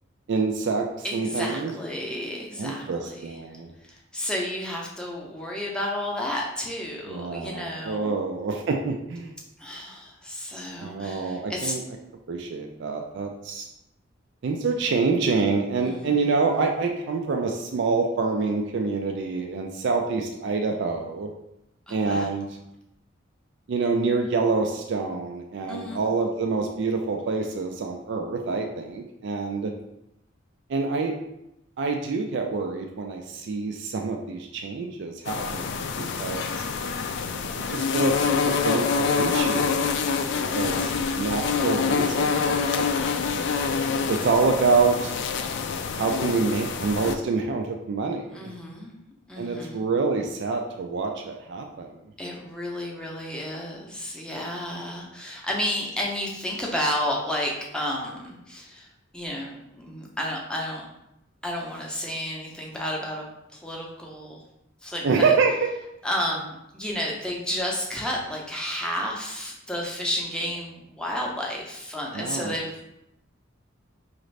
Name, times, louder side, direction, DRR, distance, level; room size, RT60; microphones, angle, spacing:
voice 1, 0.3-1.7 2.6-3.7 7.1-9.3 10.8-11.8 12.3-13.7 14.4-21.3 21.9-22.6 23.7-29.7 30.7-31.1 31.8-36.6 37.7-38.2 38.4-40.0 40.5-43.2 44.1-45.1 45.9-48.5 49.4-51.9 65.0-65.7 72.1-72.6, right 4 dB, 60° right, 3 dB, 0.4 m, -26 dB
voice 2, 1.0-3.1 4.1-8.1 9.6-11.7 15.8-16.1 21.9-22.3 25.7-26.0 35.8-36.1 40.4-40.9 42.9-43.6 48.3-48.9 49.3-49.8 52.2-58.8 59.1-60.9 61.4-63.3 63.6-64.4 64.8-65.3 66.0-72.8, left 1 dB, 5° left, -2 dB, 0.6 m, -32 dB
sound 1, 35.3-47.2, left 5 dB, 60° left, 0.3 m, -26 dB
4.9 x 2.5 x 3.2 m, 0.86 s
head